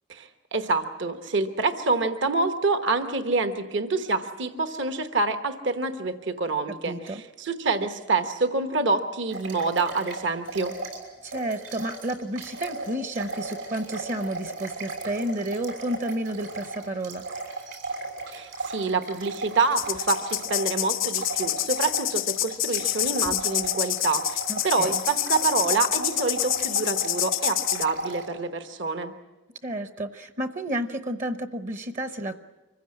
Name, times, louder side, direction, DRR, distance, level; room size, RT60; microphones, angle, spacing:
voice 1, 0.1-10.8 18.3-29.1, right 3 dB, 65° right, 8 dB, 1.2 m, -27 dB
voice 2, 6.8-7.2 11.2-17.2 24.5-25.0 29.6-32.4, right 1 dB, 40° right, 10 dB, 0.9 m, -31 dB
sound 1, 9.3-11.0 11.3-28.3, right 3 dB, 80° right, 6.2 m, -36 dB
sound 2, 19.8-27.8, left 15 dB, 75° left, 0.6 m, -28 dB
25.0 x 15.5 x 8.6 m, 1.2 s
head